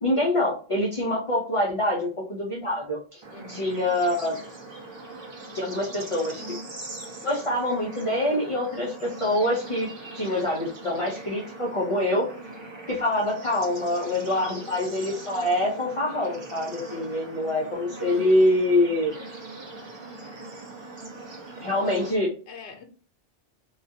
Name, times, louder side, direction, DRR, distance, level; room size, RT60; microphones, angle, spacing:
voice 1, 0.0-3.2 3.5-4.4 5.5-6.6 7.2-9.9 10.1-12.3 12.9-19.1 21.6-22.3, left 1 dB, 40° left, 0.5 m, -25 dB
Bird / Insect / Frog, 3.2-22.1, right 2 dB, 35° right, 0.5 m, -41 dB
voice 2, 3.3-4.0 22.5-22.8, left 4 dB, 85° left, 0.9 m, -44 dB
2.4 x 2.2 x 2.6 m
omnidirectional pair, 1.1 m